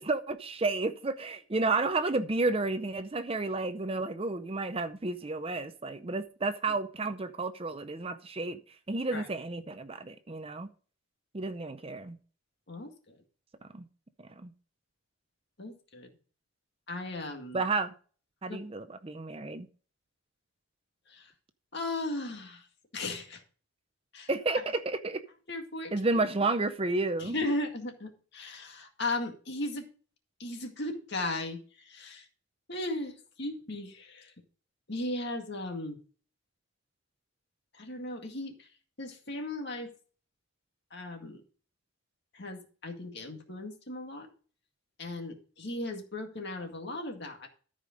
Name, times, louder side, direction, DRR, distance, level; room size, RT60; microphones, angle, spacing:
voice 1, 0.0-8.6 8.9-10.7 11.3-12.2 13.7-13.8 14.2-14.5 17.5-17.9 18.4-19.7 24.3-25.2 25.9-27.4, right 3 dB, 25° right, 0.6 m, -31 dB
voice 2, 12.7-13.2 15.6-16.1 16.9-17.6 18.5-18.6 21.1-21.3 21.7-22.7 22.9-23.4 24.1-24.6 25.5-25.9 27.2-29.9 30.4-32.3 32.7-34.3 34.9-36.0 37.7-38.7 39.0-39.9 40.9-41.4 42.3-44.3 45.0-47.5, left 2 dB, 55° left, 2.1 m, -37 dB
13.5 x 5.1 x 5.1 m
head